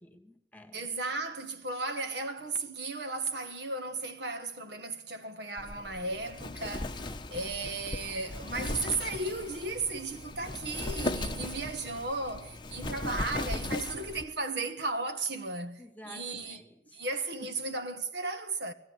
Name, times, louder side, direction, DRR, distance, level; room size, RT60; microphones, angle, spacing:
voice 1, 0.0-0.9 15.8-17.0 17.4-17.5, left 1 dB, 10° left, 1.7 m, -51 dB
voice 2, 0.7-16.6 16.9-18.7, right 3 dB, 60° right, 1.6 m, -35 dB
Wind, 5.6-14.2, left 2 dB, 25° left, 0.9 m, -37 dB
19.0 x 16.0 x 10.0 m
head